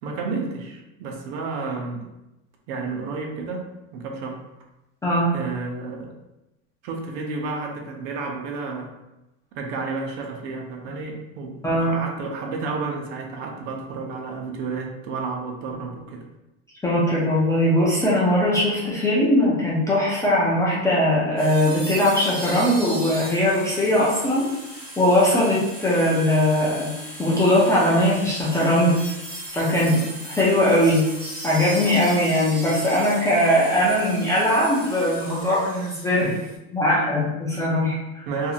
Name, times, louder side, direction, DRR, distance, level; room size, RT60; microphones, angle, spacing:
voice 1, 0.0-2.1 2.7-3.7 3.9-4.4 5.3-6.1 6.8-8.9 9.5-16.2 36.2-36.4 38.3-38.5, right 4 dB, 75° right, 1 dB, 0.7 m, -31 dB
voice 2, 11.6-12.0 16.8-24.5 25.0-26.9 27.2-29.0 29.5-30.0 30.4-31.1 31.4-36.3 36.7-38.3, left 1 dB, 10° left, -7 dB, 0.3 m, -20 dB
sound 1, 21.4-36.6, right 1 dB, 25° right, 1.3 m, -37 dB
2.8 x 2.6 x 2.4 m, 0.96 s
supercardioid pair, 135°, 37 cm